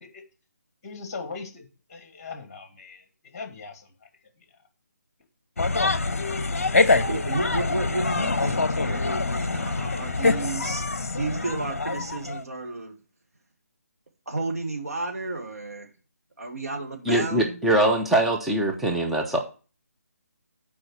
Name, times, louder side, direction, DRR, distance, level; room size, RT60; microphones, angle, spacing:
voice 1, 0.8-3.9, left 4 dB, 25° left, 6 dB, 1.9 m, -40 dB
sound 1, 5.6-12.4, left 3 dB, 55° left, 0.8 m, -25 dB
voice 2, 7.0-10.8 11.1-13.0 14.3-15.9 16.4-17.6, right 2 dB, 65° right, 2 dB, 2.1 m, -32 dB
voice 3, 17.1-19.4, right 1 dB, ahead, 0 dB, 0.6 m, -22 dB
7.8 x 4.8 x 6.3 m, 0.34 s
figure-of-eight pair, 150°, 9 cm